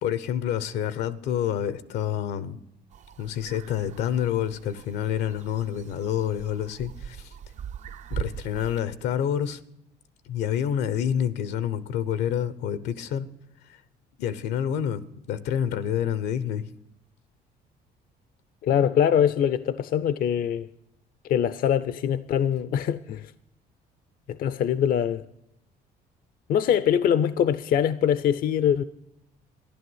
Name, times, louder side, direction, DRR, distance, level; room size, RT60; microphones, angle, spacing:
voice 1, 0.0-2.6 3.2-7.3 8.1-9.6 10.3-13.3 13.7-13.8 14.2-16.6, left 9 dB, 85° left, 0.9 m, -28 dB
sound 1, 2.9-8.8, right 9 dB, 45° right, 0.5 m, -40 dB
voice 2, 18.6-20.7 21.2-23.3 24.3-25.2 26.5-28.8, left 9 dB, 60° left, 0.6 m, -23 dB
14.5 x 11.0 x 8.0 m
cardioid pair, 110°, 17 cm